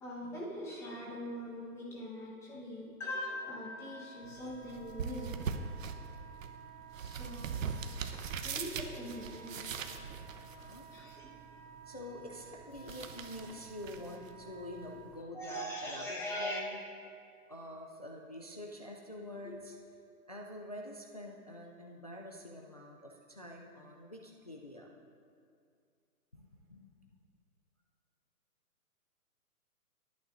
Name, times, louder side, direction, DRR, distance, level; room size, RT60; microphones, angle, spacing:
voice 1, 0.0-5.3 7.0-7.6 8.4-9.7 10.9-11.3 15.3-16.6 19.4-19.5, left 1 dB, 5° left, -5 dB, 1.1 m, -41 dB
Wind instrument woodwind instrument, 3.3-15.1, right 5 dB, 75° right, 3.2 m, -54 dB
sound 1, 4.2-15.2, right 6 dB, 60° right, 0.9 m, -42 dB
voice 2, 10.4-10.9 11.9-16.8 17.5-19.8 20.3-24.9 26.3-26.9, left 1 dB, 30° left, 0 dB, 0.4 m, -47 dB
21.0 x 9.1 x 2.6 m, 2.3 s
hypercardioid pair, 150°, 45 cm